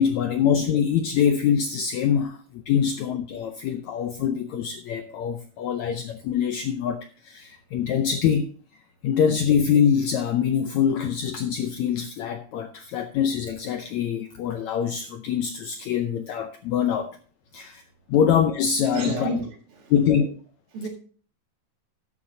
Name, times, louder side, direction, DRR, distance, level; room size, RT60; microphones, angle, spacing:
voice 1, 0.0-8.5 9.0-17.2 17.5-17.8 18.1-19.3 19.9-20.3, left 8 dB, 80° left, 1.6 m, -24 dB
voice 2, 18.9-19.9 20.7-20.9, right 2 dB, 85° right, 3.8 m, -31 dB
13.0 x 9.7 x 2.7 m
omnidirectional pair, 4.1 m